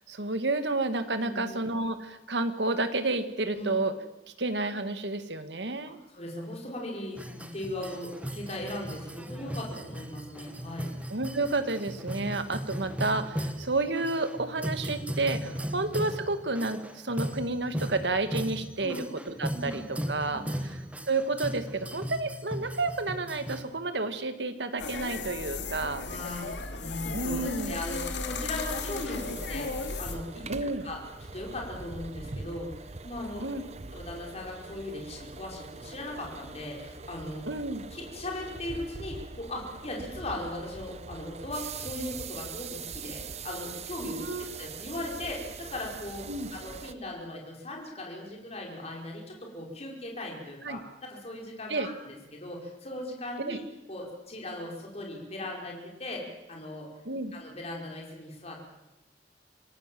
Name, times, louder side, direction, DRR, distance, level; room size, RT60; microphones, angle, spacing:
voice 1, 0.1-3.9 4.4-6.0 11.1-20.8 21.1-26.0 27.1-27.8 30.5-30.9 33.4-33.6 37.5-37.8 44.0-44.5 46.3-46.5 50.6-50.8 51.7-51.9 53.5-53.6 57.1-57.3, right 2 dB, 80° right, 9 dB, 1.9 m, -30 dB
voice 2, 1.2-1.6 3.5-3.7 5.9-11.0 12.2-12.3 15.6-15.7 18.8-19.0 19.5-19.9 20.3-20.6 26.1-33.5 33.9-37.5 37.9-44.1 44.4-53.6 53.9-56.2 56.5-56.9 57.3-58.7, left 1 dB, 40° left, 0 dB, 5.2 m, -38 dB
sound 1, 7.2-23.6, equal, 10° right, 1.7 m, -37 dB
sound 2, 24.8-30.2, left 3 dB, 85° left, 2.7 m, -35 dB
sound 3, 28.7-46.9, right 4 dB, 40° right, 1.0 m, -43 dB
26.5 x 18.0 x 7.7 m, 0.97 s
head